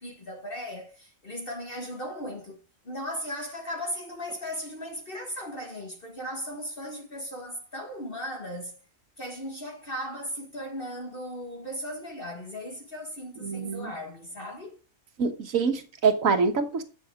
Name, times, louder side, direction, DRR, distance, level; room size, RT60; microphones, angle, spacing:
voice 1, 0.0-2.6 2.9-8.8 9.2-14.8, equal, 40° left, 1.9 m, -37 dB
voice 2, 13.4-13.9 15.2-16.8, right 5 dB, 75° right, 1.7 m, -25 dB
11.0 x 6.3 x 5.0 m
omnidirectional pair, 1.4 m